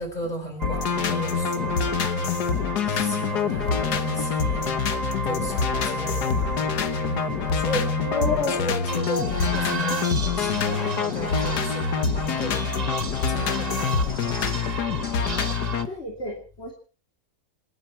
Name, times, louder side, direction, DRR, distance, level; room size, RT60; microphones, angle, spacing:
voice 1, 0.0-2.6 2.9-7.9 8.5-14.7 15.2-15.3, equal, 25° left, 6 dB, 4.3 m, -35 dB
sound 1, 0.6-15.9, left 6 dB, 85° left, 1.8 m, -26 dB
Too Many Dreams for One Nigth, 0.6-8.6 8.9-15.8, right 5 dB, 35° right, 0.8 m, -34 dB
voice 2, 8.1-8.6 15.9-16.7, left 3 dB, 40° left, -1 dB, 3.2 m, -29 dB
27.0 x 11.5 x 4.5 m, 0.38 s
omnidirectional pair, 1.7 m